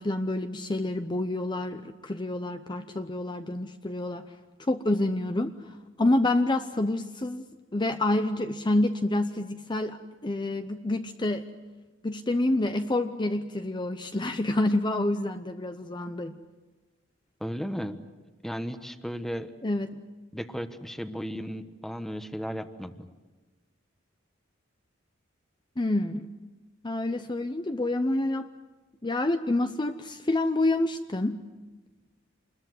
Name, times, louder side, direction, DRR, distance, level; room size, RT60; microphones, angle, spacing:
voice 1, 0.0-4.2 4.6-7.4 7.7-10.0 10.2-11.4 12.0-16.4 19.6-19.9 25.8-26.3 26.8-28.5 29.0-31.4, left 2 dB, 25° left, 8 dB, 0.7 m, -28 dB
voice 2, 17.4-18.0 18.4-19.5 20.3-23.1, equal, ahead, 9 dB, 1.2 m, -35 dB
27.5 x 21.5 x 8.0 m, 1.3 s
head